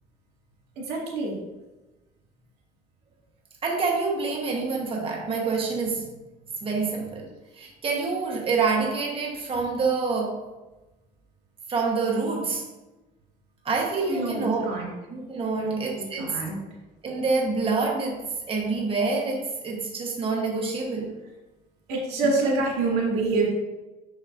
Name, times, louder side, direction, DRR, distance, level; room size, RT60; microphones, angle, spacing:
voice 1, 0.8-1.4 14.1-14.9 15.5-16.6 21.9-23.5, right 3 dB, 90° right, -2 dB, 1.9 m, -27 dB
voice 2, 3.6-6.1 6.6-10.5 11.7-12.6 13.6-14.7 15.1-16.4 17.0-21.2 22.2-22.6, right 4 dB, 35° right, -1 dB, 1.2 m, -27 dB
6.3 x 6.1 x 2.6 m, 1.1 s
cardioid pair, 110°, 17 cm